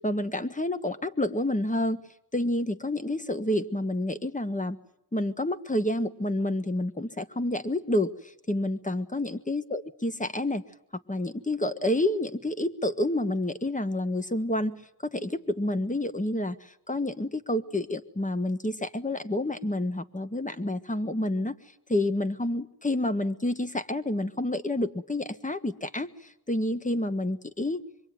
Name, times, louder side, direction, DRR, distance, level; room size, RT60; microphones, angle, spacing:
voice 1, 0.0-2.0 2.3-4.8 5.1-10.6 11.1-21.5 21.9-27.8, left 1 dB, 20° left, 10 dB, 1.6 m, -29 dB
25.5 x 22.5 x 9.5 m, 0.75 s
wide cardioid pair, 75°, 38 cm